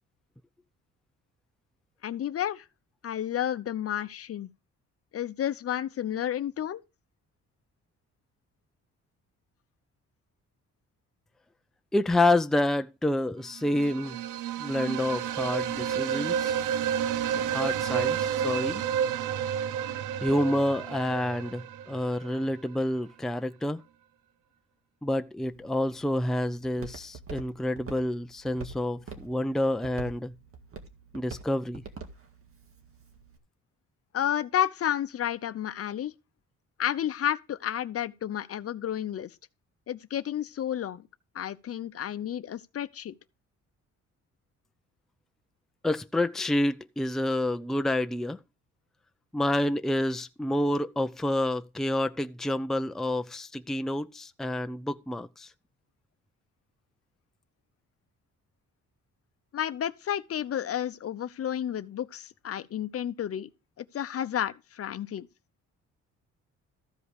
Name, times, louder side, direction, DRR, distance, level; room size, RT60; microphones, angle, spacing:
voice 1, 2.0-2.7 3.0-4.5 5.1-6.8 34.1-36.1 36.8-39.4 39.9-41.1 41.3-43.1 59.5-63.5 63.8-65.3, left 10 dB, 50° left, 0.7 m, -31 dB
voice 2, 11.9-14.2 14.6-16.6 17.3-18.8 20.2-23.8 25.0-30.3 31.1-31.8 45.8-48.4 49.3-55.5, left 1 dB, ahead, 0.5 m, -28 dB
sound 1, 13.6-22.5, right 9 dB, 85° right, 0.6 m, -30 dB
Walk footsteps, 25.4-33.4, right 4 dB, 45° right, 1.9 m, -46 dB
14.0 x 5.0 x 4.8 m
cardioid pair, 90°, 30 cm